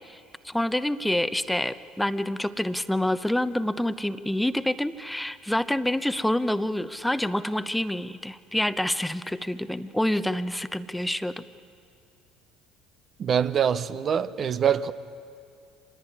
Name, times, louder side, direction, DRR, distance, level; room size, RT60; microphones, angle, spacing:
voice 1, 0.0-11.4, left 1 dB, 5° left, 13 dB, 0.8 m, -27 dB
voice 2, 13.2-14.9, right 8 dB, 45° right, 13 dB, 0.8 m, -24 dB
25.0 x 19.5 x 9.8 m, 2.4 s
hypercardioid pair, 70°, 0 cm